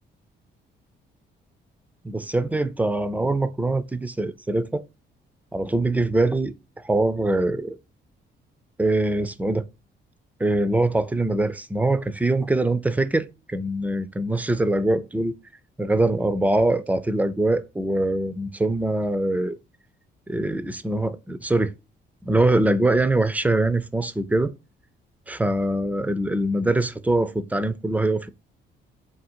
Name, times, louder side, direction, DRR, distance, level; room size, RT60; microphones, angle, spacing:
voice 1, 2.0-4.8 5.5-6.5 6.8-7.8 8.8-9.6 10.4-15.3 15.8-19.6 20.3-21.7 22.2-24.5 25.3-28.3, right 2 dB, 10° right, 0.3 m, -23 dB
3.7 x 2.6 x 4.3 m
cardioid pair, 90°, 20 cm